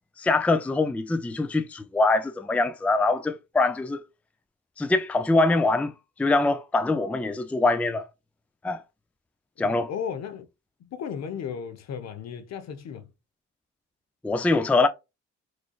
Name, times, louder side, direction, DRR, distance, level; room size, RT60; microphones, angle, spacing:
voice 1, 0.2-4.0 4.8-5.9 6.2-8.1 8.6-8.8 9.6-9.9 14.2-14.9, left 3 dB, 5° left, 0.4 m, -23 dB
voice 2, 9.6-10.5 10.8-13.1, left 7 dB, 60° left, 0.9 m, -35 dB
3.8 x 3.2 x 2.3 m
cardioid pair, 90°, 30 cm